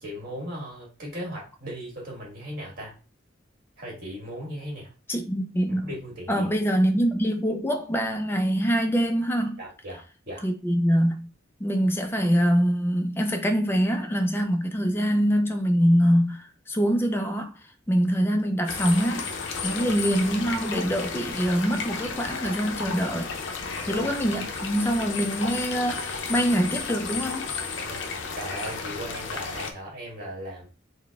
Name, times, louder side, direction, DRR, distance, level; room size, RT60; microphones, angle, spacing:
voice 1, 0.0-2.9 3.8-4.9 5.7-6.5 9.6-10.4 19.6-19.9 23.7-24.1 27.8-28.0 28.3-30.7, equal, 50° right, 1.7 m, -37 dB
voice 2, 5.1-5.9 6.3-9.6 10.4-11.3 11.6-17.6 17.9-19.4 19.6-23.3 23.9-27.5, equal, 10° left, 0.3 m, -24 dB
sound 1, 18.7-29.7, left 5 dB, 70° left, 0.5 m, -33 dB
3.8 x 2.1 x 3.4 m
head